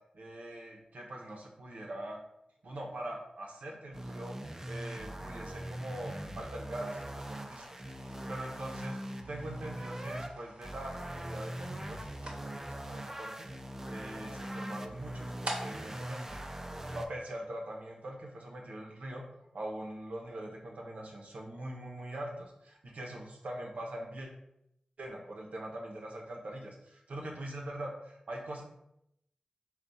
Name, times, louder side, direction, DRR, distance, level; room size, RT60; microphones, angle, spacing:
voice 1, 0.1-2.2 2.6-4.3 4.7-7.8 8.3-9.0 9.3-13.5 13.9-16.6 16.9-19.3 19.5-24.3 25.0-28.6, right 1 dB, 90° right, -1 dB, 0.8 m, -42 dB
sound 1, 3.9-10.3 10.6-17.1, right 1 dB, 20° right, 0.4 m, -41 dB
sound 2, 7.0-17.4, right 1 dB, 60° right, 0.8 m, -49 dB
3.5 x 2.3 x 4.0 m, 0.79 s
wide cardioid pair, 55°, 2 cm